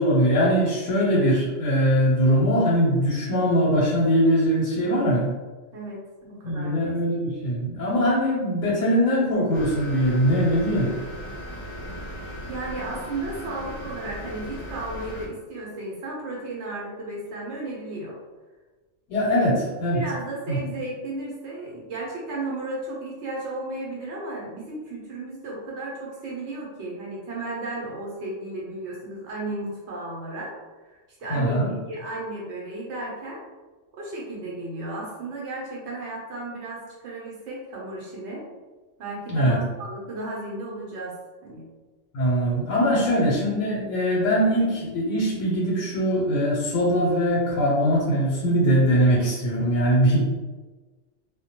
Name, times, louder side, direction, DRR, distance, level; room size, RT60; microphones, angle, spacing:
voice 1, 0.0-5.3 6.2-10.9 19.1-20.0 20.5-20.6 31.3-31.7 39.3-39.6 42.1-50.2, equal, 90° left, -4 dB, 1.0 m, -21 dB
voice 2, 5.7-6.0 6.3-6.7 11.9-18.2 19.3-19.4 19.9-33.4 33.9-38.5 39.0-41.7 42.9-43.0, right 2 dB, 70° right, -3 dB, 0.8 m, -34 dB
sound 1, 9.5-15.3, equal, 55° left, 0.6 m, -37 dB
2.1 x 2.1 x 2.8 m, 1.3 s
omnidirectional pair, 1.3 m